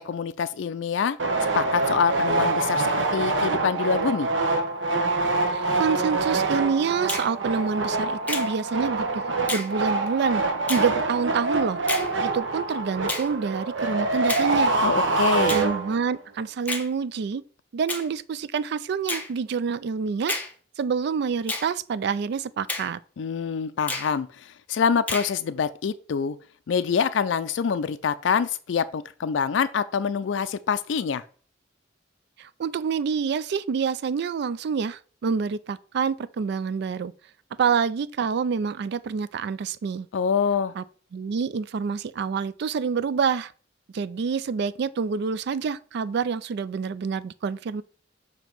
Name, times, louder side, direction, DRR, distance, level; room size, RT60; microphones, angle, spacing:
voice 1, 0.0-4.3 14.8-15.6 23.2-26.4 26.7-31.2 40.1-40.7, left 6 dB, 75° left, 0.4 m, -26 dB
sound 1, 1.2-16.2, right 3 dB, 90° right, 1.0 m, -25 dB
voice 2, 5.5-9.2 9.5-10.4 10.7-11.8 12.2-14.7 15.5-17.4 17.7-20.4 20.8-23.0 32.4-37.1 37.6-40.1 40.8-40.9 41.1-43.5 43.9-47.8, right 6 dB, 60° right, 0.3 m, -27 dB
Finger snapping, 7.1-7.3 8.3-8.5 9.5-9.7 10.7-10.9 11.9-12.1 13.1-13.3 14.3-14.5 15.5-15.7 16.7-16.9 17.9-18.1 19.1-19.3 20.3-20.5 21.5-21.7 22.7-22.9 23.9-24.1 25.1-25.3, left 2 dB, 10° left, 0.9 m, -30 dB
7.1 x 2.9 x 5.8 m
head